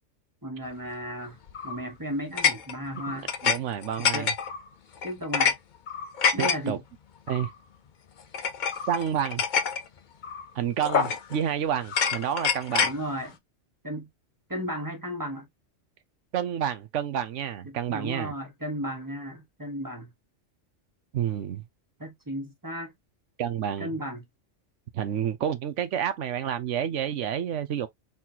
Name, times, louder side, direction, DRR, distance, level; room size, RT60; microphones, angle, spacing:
voice 1, 0.4-1.4 1.6-3.3 4.0-4.3 5.0-5.6 6.3-6.8 12.8-13.4 13.8-14.1 14.5-15.5 17.6-20.1 22.0-22.9 23.8-24.2, equal, 15° right, 1.2 m, -34 dB
sound 1, 1.5-1.8 2.4-3.6 3.8-4.6 5.0-5.6 5.9-6.6 7.3-7.5 8.3-9.8 10.2-10.4 10.8-11.4 11.9-13.0, left 6 dB, 50° left, 0.7 m, -26 dB
voice 2, 3.4-4.3 6.4-6.8 7.3-7.5 8.9-9.4 10.5-12.9 16.3-18.3 21.1-21.6 23.4-23.9 24.9-27.9, right 9 dB, 75° right, 1.0 m, -29 dB
4.2 x 3.7 x 2.8 m
omnidirectional pair, 1.3 m